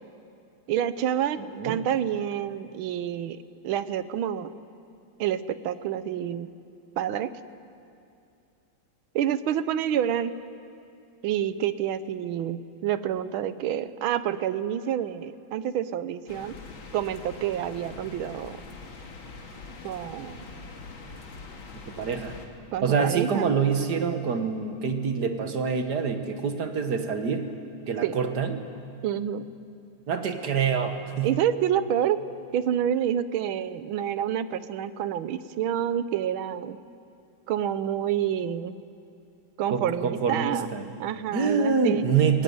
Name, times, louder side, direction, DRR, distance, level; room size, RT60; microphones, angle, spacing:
voice 1, 0.7-4.5 5.2-6.5 7.0-7.3 9.1-10.3 11.2-16.5 16.9-18.6 19.8-20.6 22.7-23.5 28.0-28.1 29.0-29.4 31.2-32.2 32.5-36.8 37.5-38.8 39.6-40.7 41.0-42.0, right 10 dB, 90° right, 14 dB, 1.6 m, -28 dB
sound 1, 16.3-22.5, left 3 dB, 80° left, 2.7 m, -43 dB
voice 2, 22.0-22.4 22.8-27.5 27.9-28.6 30.1-31.3 39.7-40.9 41.3-42.4, right 6 dB, 55° right, 7 dB, 1.9 m, -26 dB
22.5 x 17.5 x 9.5 m, 2.6 s
omnidirectional pair, 2.2 m